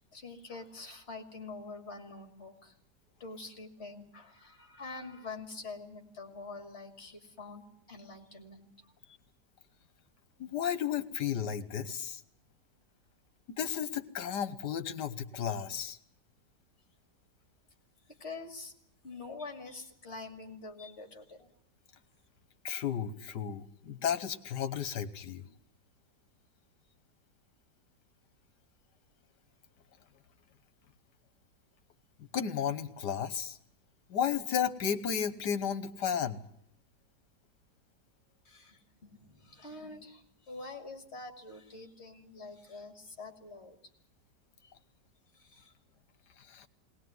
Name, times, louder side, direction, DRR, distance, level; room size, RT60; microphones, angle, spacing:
voice 1, 0.0-2.8 3.2-7.6 7.9-8.7 9.0-9.2 18.2-18.7 19.0-21.5 38.4-43.8 44.6-44.7 45.3-45.7, left 3 dB, 40° left, 5 dB, 2.8 m, -46 dB
voice 2, 10.4-12.2 13.5-16.0 22.6-25.5 32.3-33.6 34.1-36.4 46.4-46.7, left 8 dB, 75° left, 12 dB, 1.8 m, -33 dB
20.0 x 19.0 x 9.5 m, 0.72 s
omnidirectional pair, 1.8 m